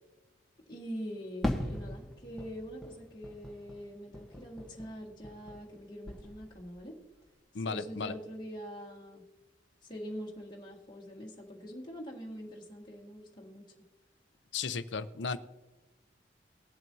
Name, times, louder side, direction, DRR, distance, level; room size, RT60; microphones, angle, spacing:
voice 1, 0.7-6.9 7.7-9.3 9.8-13.7, equal, 25° left, -3 dB, 1.8 m, -44 dB
Fireworks, 1.4-5.8 6.0-6.8, left 1 dB, ahead, 1.1 m, -39 dB
voice 2, 7.5-8.1 14.5-15.4, left 5 dB, 75° left, 13 dB, 0.6 m, -35 dB
20.0 x 7.6 x 2.7 m, 1.2 s
head